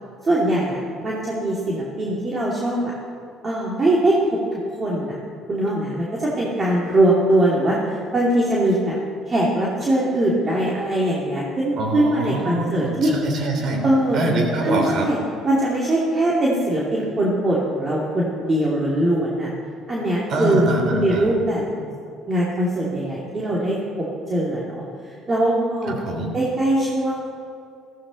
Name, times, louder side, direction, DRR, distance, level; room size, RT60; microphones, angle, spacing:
voice 1, 0.2-2.8 3.4-4.1 4.5-5.1 5.5-7.8 8.1-9.0 9.3-13.1 13.8-14.3 14.6-15.2 15.4-19.5 19.9-20.6 20.9-21.9 22.3-23.8 24.3-24.8 25.3-25.9 26.3-27.3, right 1 dB, 30° right, -5 dB, 2.7 m, -21 dB
voice 2, 11.8-13.8 14.1-15.1 20.3-21.3 25.9-26.3, right 1 dB, 55° right, 3 dB, 3.1 m, -24 dB
15.0 x 14.5 x 4.1 m, 2.4 s
supercardioid pair, 85°, 0 cm